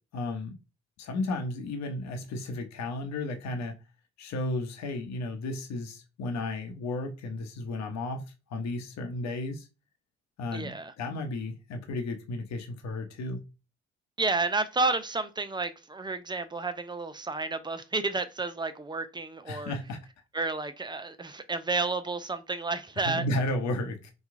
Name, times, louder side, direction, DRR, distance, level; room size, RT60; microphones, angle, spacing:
voice 1, 0.1-0.5 1.0-3.8 4.2-9.7 10.4-13.4 19.5-20.1 23.0-24.1, left 2 dB, 60° left, 0.9 m, -33 dB
voice 2, 10.5-10.9 14.2-19.8 20.3-23.3, right 3 dB, 15° right, 0.5 m, -31 dB
2.9 x 2.3 x 3.6 m
hypercardioid pair, 50°, 31 cm